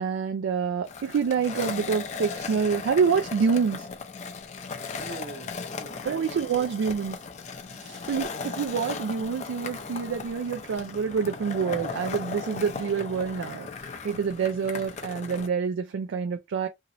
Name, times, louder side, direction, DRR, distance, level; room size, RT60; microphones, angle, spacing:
voice 1, 0.0-3.9 6.0-7.2 8.0-16.7, right 6 dB, 85° right, 0.3 m, -27 dB
Skateboard, 0.8-15.5, left 4 dB, 35° left, 0.4 m, -37 dB
voice 2, 5.0-6.7 7.7-8.1, right 2 dB, 65° right, 1.2 m, -43 dB
2.9 x 2.8 x 2.5 m
head